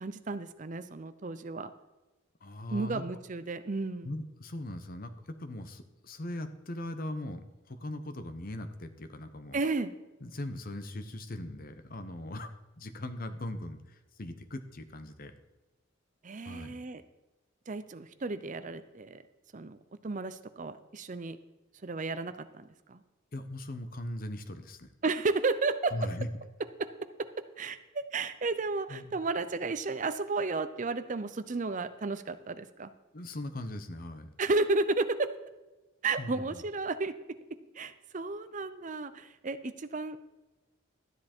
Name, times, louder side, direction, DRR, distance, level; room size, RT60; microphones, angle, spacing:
voice 1, 0.0-1.7 2.7-4.1 9.5-9.9 16.2-17.0 17.7-19.2 19.5-19.8 20.0-21.4 21.8-23.0 25.0-26.1 26.8-26.9 27.2-32.9 34.4-35.3 36.0-37.1 37.7-40.2, right 3 dB, 40° right, 12 dB, 0.6 m, -33 dB
voice 2, 2.4-3.0 4.0-5.1 5.4-9.6 10.2-15.3 16.5-16.8 23.3-24.9 25.9-26.3 28.9-29.1 33.1-34.3 36.2-36.6, left 1 dB, 45° left, 9 dB, 1.0 m, -39 dB
12.5 x 10.0 x 4.4 m, 1.1 s
head